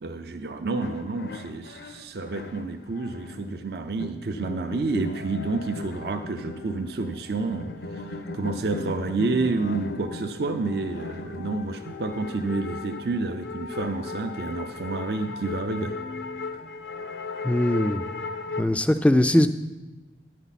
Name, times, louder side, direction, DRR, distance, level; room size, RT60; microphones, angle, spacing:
voice 1, 0.0-16.0, right 3 dB, 60° right, 6 dB, 0.5 m, -29 dB
sound 1, 0.8-18.6, left 3 dB, 70° left, 0.6 m, -37 dB
voice 2, 17.4-18.0 18.6-19.5, left 1 dB, 5° left, 11 dB, 0.3 m, -20 dB
10.5 x 9.2 x 4.1 m, 1.2 s
head